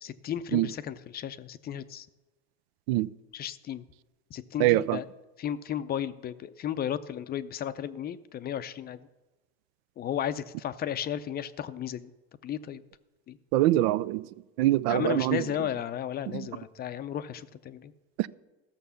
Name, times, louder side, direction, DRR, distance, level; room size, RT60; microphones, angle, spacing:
voice 1, 0.0-2.1 3.3-3.9 4.3-5.1 5.4-9.1 10.0-12.1 12.4-12.8 13.3-13.4 14.9-17.9, left 10 dB, 30° left, 0.5 m, -34 dB
voice 2, 4.6-5.0 13.5-14.2 14.6-15.4 18.2-18.3, right 16 dB, 65° right, 0.5 m, -24 dB
14.0 x 6.7 x 6.9 m
supercardioid pair, 120°, 33 cm